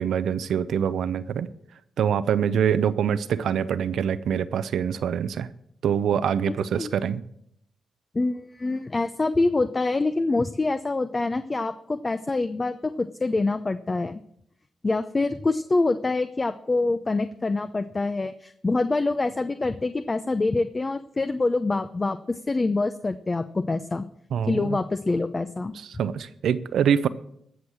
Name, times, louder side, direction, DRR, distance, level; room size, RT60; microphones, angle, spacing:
voice 1, 0.0-1.5 2.0-5.5 5.8-7.2 24.3-24.8 25.8-27.1, right 8 dB, 80° right, 14 dB, 0.6 m, -25 dB
voice 2, 6.5-6.9 8.1-14.2 14.8-24.1 24.5-25.7, left 3 dB, 30° left, 10 dB, 0.6 m, -25 dB
16.0 x 6.3 x 7.3 m, 0.73 s
cardioid pair, 60°, 0 cm